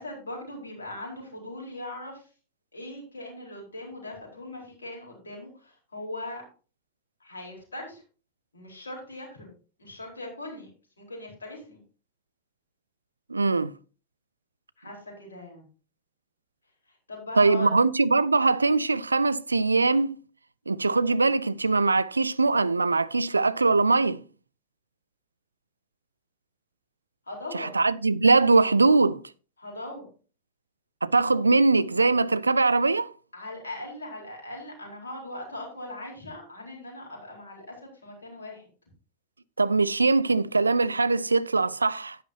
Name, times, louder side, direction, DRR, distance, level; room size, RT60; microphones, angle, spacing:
voice 1, 0.0-2.3 2.7-6.4 7.2-8.0 8.5-9.5 9.8-10.7 11.0-11.8 14.8-15.6 16.9-17.8 27.3-27.7 29.6-30.1 33.3-38.7, left 1 dB, 75° left, 4.3 m, -40 dB
voice 2, 13.3-13.7 17.4-20.2 20.7-24.2 27.5-29.2 31.0-33.1 39.6-42.2, right 3 dB, 80° right, 0.4 m, -22 dB
10.5 x 9.9 x 2.8 m
figure-of-eight pair, 90°, 0 cm